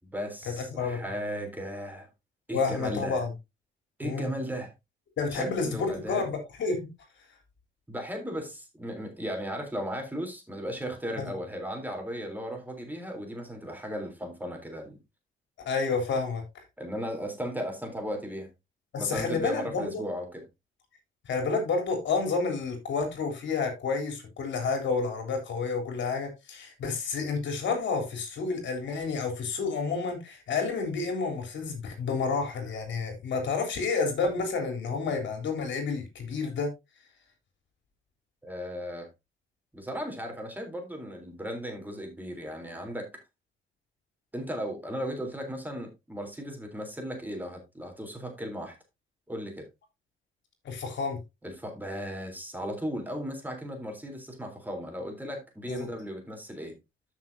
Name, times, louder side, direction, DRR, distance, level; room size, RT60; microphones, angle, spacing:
voice 1, 0.0-2.1 2.5-3.2 4.0-4.7 5.3-6.3 7.9-15.0 16.8-18.5 19.0-20.4 38.4-39.1 39.7-43.1 44.3-48.7 49.3-49.7 51.4-56.7, equal, 10° right, 3.5 m, -36 dB
voice 2, 0.6-1.0 2.5-3.3 4.0-4.3 5.2-6.8 11.2-11.3 15.7-16.6 18.9-20.0 21.3-36.7 50.7-51.2 55.7-55.9, left 4 dB, 70° left, 3.6 m, -30 dB
13.5 x 6.2 x 2.7 m
cardioid pair, 90°, 20 cm